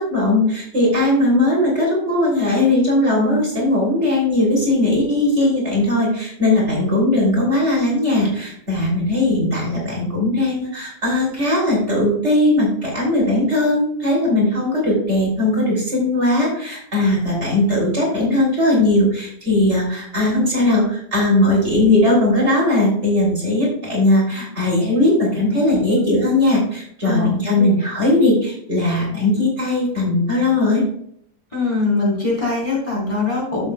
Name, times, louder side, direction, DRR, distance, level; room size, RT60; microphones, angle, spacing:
voice 1, 0.0-30.8, left 1 dB, 40° right, -4 dB, 3.4 m, -18 dB
voice 2, 31.5-33.7, left 3 dB, 20° left, -5 dB, 3.7 m, -22 dB
11.5 x 7.6 x 2.2 m, 0.67 s
omnidirectional pair, 1.9 m